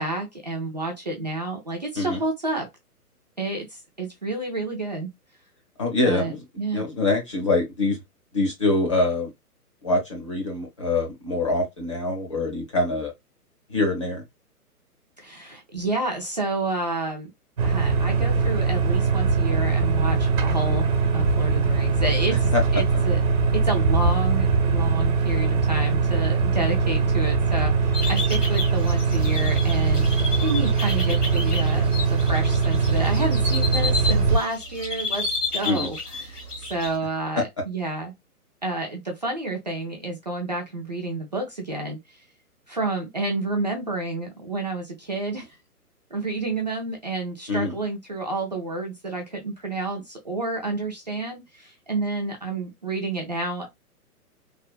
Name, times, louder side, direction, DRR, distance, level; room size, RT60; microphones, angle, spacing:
voice 1, 0.0-2.7 3.4-5.1 6.1-6.8 15.2-17.3 17.6-23.2 23.5-35.3 35.5-36.4 36.7-38.1 38.6-42.0 42.7-45.5 46.1-53.7, right 2 dB, 30° right, 0.4 m, -30 dB
voice 2, 5.8-6.4 6.7-8.0 8.3-9.3 9.8-13.1 13.7-14.2 22.5-22.6 35.6-35.9 47.5-47.7, left 2 dB, 20° left, 0.5 m, -24 dB
sound 1, 17.6-34.4, right 4 dB, 60° right, 1.0 m, -21 dB
sound 2, 27.9-37.0, left 2 dB, 80° left, 1.4 m, -32 dB
3.3 x 2.1 x 2.3 m
figure-of-eight pair, 130°, 46 cm